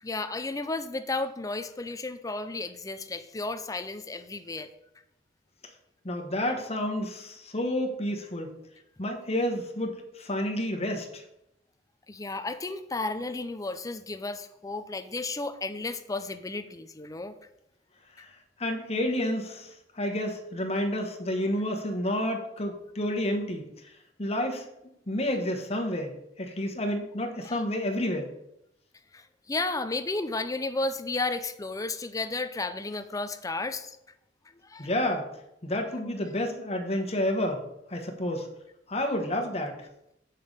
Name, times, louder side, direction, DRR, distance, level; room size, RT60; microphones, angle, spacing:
voice 1, 0.0-4.7 12.1-17.3 27.4-27.6 29.1-34.0 34.6-34.9, left 3 dB, 20° left, 10 dB, 0.5 m, -33 dB
voice 2, 6.0-8.6 9.0-11.2 18.2-18.3 18.6-23.7 24.2-24.6 25.1-28.3 34.8-35.3 35.6-37.6 37.9-38.5 38.9-39.8, left 1 dB, 35° left, 3 dB, 1.2 m, -30 dB
7.0 x 5.7 x 5.3 m, 0.82 s
head